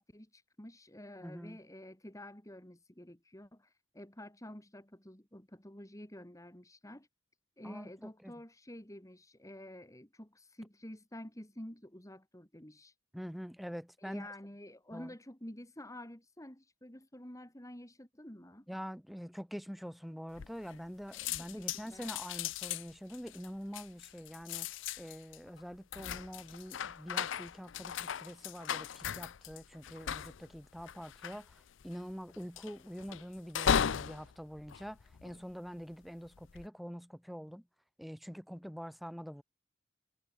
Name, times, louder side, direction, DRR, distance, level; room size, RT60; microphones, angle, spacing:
voice 1, 0.0-7.1 7.6-12.9 14.0-18.7 21.4-22.0, left 1 dB, 15° left, 2.9 m, -50 dB
voice 2, 1.2-1.6 7.6-8.3 13.1-14.3 14.9-15.1 18.7-24.7 25.0-37.7 38.0-39.4, equal, ahead, 1.0 m, -45 dB
sound 1, 20.4-20.9 21.1-35.7 36.3-36.7, left 8 dB, 65° left, 0.5 m, -37 dB
head